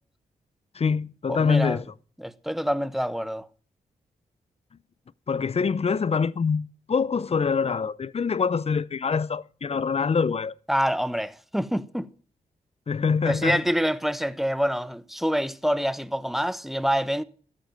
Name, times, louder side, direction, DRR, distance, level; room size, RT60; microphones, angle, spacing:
voice 1, 0.7-1.8 5.3-10.5 12.9-13.6, left 5 dB, 40° left, 0.7 m, -25 dB
voice 2, 1.3-1.8 2.2-3.4 10.7-12.1 13.2-17.2, equal, ahead, 1.1 m, -26 dB
13.0 x 8.9 x 7.5 m
supercardioid pair, 45°, 15 cm